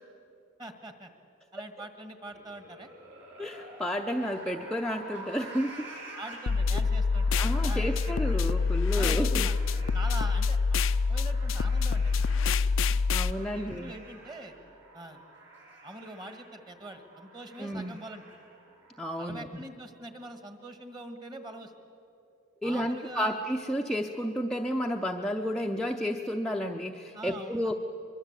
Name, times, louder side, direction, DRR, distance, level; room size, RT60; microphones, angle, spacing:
voice 1, 0.6-1.1 1.5-2.9 6.2-8.1 8.9-9.5 9.9-10.8 11.1-12.9 13.5-14.5 14.9-15.2 15.8-18.2 19.2-21.7 22.6-23.4 27.1-27.6, right 1 dB, 20° right, 7 dB, 1.7 m, -44 dB
sound 1, 2.2-19.2, right 2 dB, 65° right, 7.5 m, -49 dB
voice 2, 3.4-5.9 7.4-9.5 13.1-13.9 17.6-18.0 19.0-19.5 22.6-27.7, equal, 5° left, 1 dB, 0.6 m, -31 dB
sound 2, 6.5-13.3, left 4 dB, 75° left, 0.5 m, -26 dB
23.5 x 23.0 x 8.1 m, 2.8 s
head